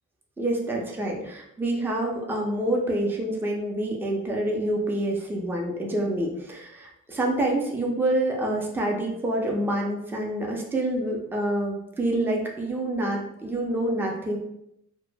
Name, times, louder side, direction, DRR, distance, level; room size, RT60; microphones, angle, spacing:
voice 1, 0.4-14.4, right 1 dB, 5° right, 0 dB, 0.4 m, -27 dB
2.1 x 2.0 x 3.2 m, 0.79 s
cardioid pair, 90°, 30 cm